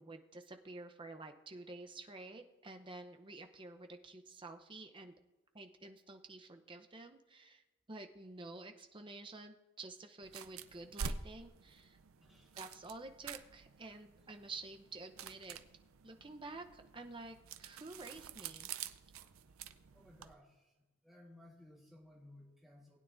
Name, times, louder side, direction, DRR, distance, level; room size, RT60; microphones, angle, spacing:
voice 1, 0.0-5.1 5.5-12.0 12.5-15.6 16.0-18.7, right 2 dB, 25° right, 6 dB, 0.7 m, -50 dB
sound 1, 10.2-20.3, right 6 dB, 90° right, 0.6 m, -48 dB
voice 2, 12.2-12.6 19.9-20.7 21.0-23.0, left 1 dB, ahead, -3 dB, 1.4 m, -59 dB
19.5 x 9.4 x 2.6 m, 1.1 s
head